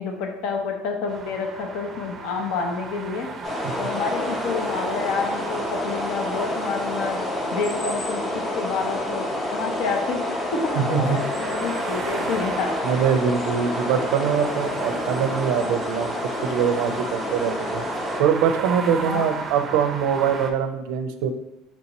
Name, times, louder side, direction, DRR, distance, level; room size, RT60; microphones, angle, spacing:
voice 1, 0.0-3.3 3.8-7.2 7.5-10.2 10.5-13.0 19.0-19.2, left 4 dB, 70° left, 3 dB, 0.7 m, -29 dB
sound 1, 1.1-20.5, right 4 dB, 25° right, 0.5 m, -36 dB
sound 2, 3.4-18.2, left 1 dB, 20° left, 0.7 m, -29 dB
voice 2, 10.8-11.2 12.8-17.9 18.2-21.3, right 7 dB, 80° right, 8 dB, 0.4 m, -23 dB
4.6 x 2.9 x 4.0 m, 0.90 s
cardioid pair, 150°, 0 cm